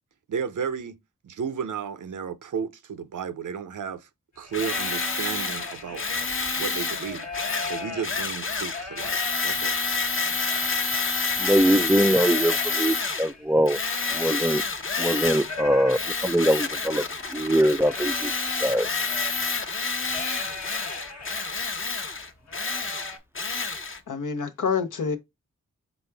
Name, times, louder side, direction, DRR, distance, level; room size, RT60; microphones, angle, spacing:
voice 1, 0.3-4.1 4.4-6.0 6.6-7.3 7.6-9.8, right 7 dB, 80° right, 0.7 m, -33 dB
sound 1, 4.4-14.9 15.2-21.6 22.0-22.1 22.5-23.2, left 3 dB, 60° left, 1.2 m, -40 dB
Tools, 4.5-13.3 13.7-15.6 15.9-24.0, left 4 dB, 40° left, 0.8 m, -28 dB
voice 2, 11.4-13.8 14.1-14.6 15.0-17.0 17.3-18.3 18.6-18.9, equal, 10° right, 0.3 m, -22 dB
voice 3, 24.1-25.2, left 5 dB, 80° left, 0.9 m, -27 dB
4.2 x 3.5 x 3.4 m
cardioid pair, 45°, 31 cm